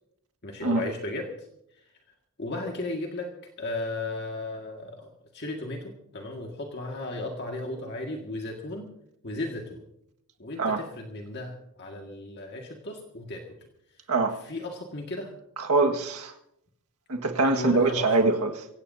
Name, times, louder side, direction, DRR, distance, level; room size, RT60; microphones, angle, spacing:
voice 1, 0.4-1.3 2.4-3.3 3.6-5.1 5.3-8.9 9.2-9.8 10.4-13.5 14.4-15.3 17.4-18.3, left 2 dB, 50° left, 1.9 m, -35 dB
voice 2, 15.6-16.3 17.1-18.5, right 3 dB, 85° right, 1.7 m, -23 dB
24.0 x 16.5 x 2.7 m
head